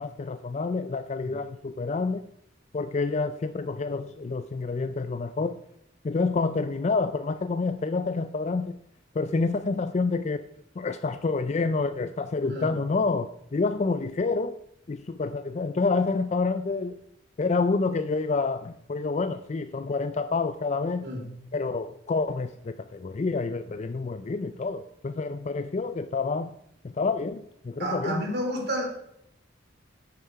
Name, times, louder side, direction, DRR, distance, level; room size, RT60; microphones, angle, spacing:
voice 1, 0.0-2.2 2.7-5.6 6.0-8.8 9.1-10.5 10.8-14.6 14.9-17.0 17.4-21.1 21.5-26.5 26.8-28.3, left 3 dB, 35° left, 11 dB, 0.4 m, -28 dB
voice 2, 27.8-28.8, equal, 60° right, 2 dB, 3.3 m, -30 dB
11.0 x 9.0 x 4.7 m, 0.76 s
head